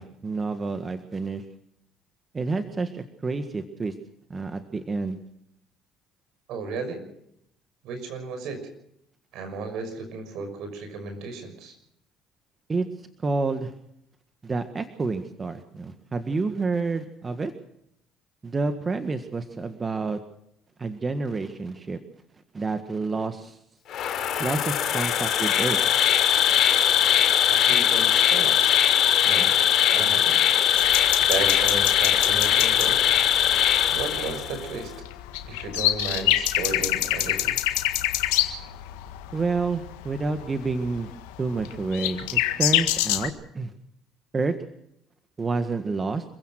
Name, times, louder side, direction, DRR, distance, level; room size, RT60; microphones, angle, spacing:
voice 1, 0.0-1.4 2.3-3.9 4.3-5.2 12.7-12.9 13.2-13.7 14.4-17.5 18.4-20.2 20.8-22.0 22.5-23.6 24.4-25.8 39.3-41.1 41.4-43.7 44.3-44.5 45.4-46.2, right 3 dB, 30° right, 8 dB, 1.7 m, -29 dB
voice 2, 6.5-7.0 7.8-8.6 9.3-11.7 27.5-28.7 29.2-29.5 29.9-30.4 31.3-33.0 33.9-34.9 35.5-37.6, right 4 dB, 70° right, 7 dB, 6.1 m, -34 dB
Insect, 23.9-34.7, left 10 dB, 60° left, 3.1 m, -21 dB
sound 1, 30.8-43.3, left 14 dB, 85° left, 1.6 m, -27 dB
26.5 x 16.0 x 6.4 m, 0.74 s
supercardioid pair, 70°, 0 cm